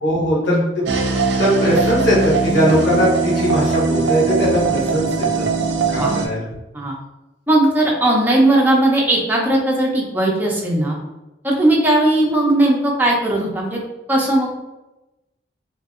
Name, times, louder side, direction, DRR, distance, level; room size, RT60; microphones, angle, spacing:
voice 1, 0.0-5.4 5.9-6.4, equal, 70° left, -7 dB, 1.1 m, -20 dB
sound 1, 0.9-6.3, right 4 dB, 65° right, 0.4 m, -20 dB
voice 2, 7.5-11.0 11.4-13.8 14.1-14.5, right 1 dB, 10° right, -2 dB, 0.5 m, -17 dB
2.7 x 2.5 x 2.4 m, 0.99 s
head